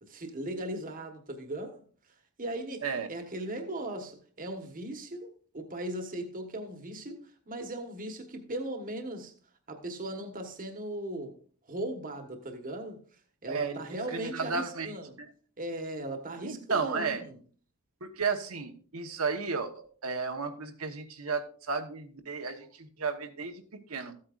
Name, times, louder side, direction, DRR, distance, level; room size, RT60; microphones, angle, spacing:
voice 1, 0.0-1.8 2.4-9.3 9.7-11.4 11.7-13.0 13.4-15.2 15.6-17.4, right 1 dB, 40° right, 1.4 m, -38 dB
voice 2, 13.5-13.8 14.1-14.9 15.2-15.3 16.4-17.2 18.0-23.6 23.9-24.1, right 4 dB, 75° right, 1.2 m, -33 dB
14.5 x 8.7 x 2.5 m
head